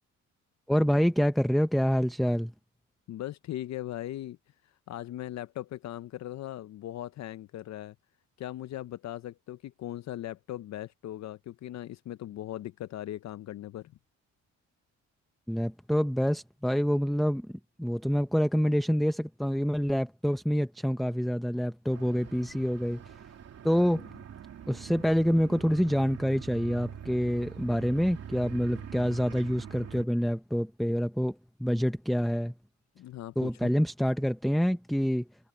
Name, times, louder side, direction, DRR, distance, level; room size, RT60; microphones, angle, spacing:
voice 1, 0.7-2.5 15.5-23.2 23.6-24.0 24.7-32.5 33.4-35.3, equal, ahead, 0.7 m, -27 dB
voice 2, 3.1-4.4 4.9-7.9 8.4-13.9 23.9-24.0 33.0-33.7, left 13 dB, 65° left, 0.6 m, -39 dB
sound 1, 21.9-30.1, right 8 dB, 55° right, 3.0 m, -44 dB
cardioid pair, 90°, 30 cm